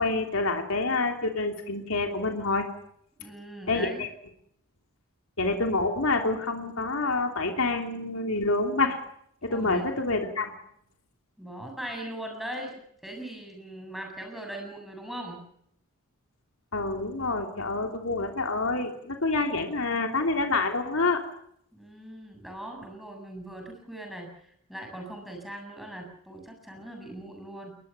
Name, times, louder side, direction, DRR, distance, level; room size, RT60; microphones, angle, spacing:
voice 1, 0.0-2.7 3.7-4.1 5.4-9.0 9.4-10.5 16.7-21.2, left 3 dB, 65° left, 4 dB, 3.2 m, -27 dB
voice 2, 3.2-4.1 9.5-9.8 11.4-15.4 21.7-27.8, right 1 dB, ahead, 2 dB, 7.9 m, -40 dB
21.5 x 21.0 x 7.0 m, 0.71 s
head